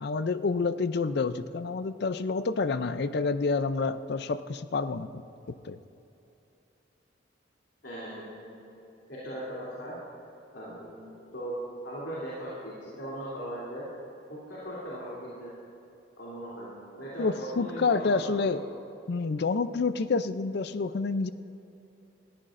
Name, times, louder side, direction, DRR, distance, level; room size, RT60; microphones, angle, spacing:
voice 1, 0.0-5.8 17.2-18.6 19.1-21.3, left 4 dB, 60° left, 13 dB, 0.5 m, -28 dB
voice 2, 7.8-8.6 9.1-9.9 10.5-11.6 11.8-13.8 14.3-15.5 16.2-18.6, right 1 dB, 80° left, -8 dB, 3.1 m, -39 dB
20.5 x 14.0 x 2.6 m, 2.9 s
head